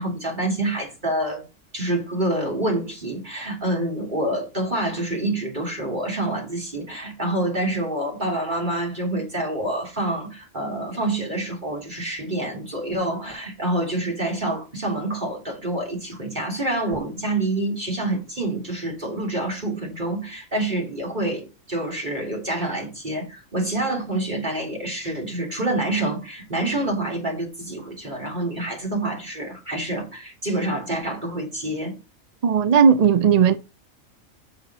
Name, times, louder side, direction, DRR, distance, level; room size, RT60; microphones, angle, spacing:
voice 1, 0.0-1.4 1.7-32.0, right 1 dB, 35° right, 3.6 m, -27 dB
voice 2, 32.4-33.6, right 7 dB, 60° right, 0.4 m, -16 dB
6.5 x 6.4 x 6.2 m
omnidirectional pair, 1.4 m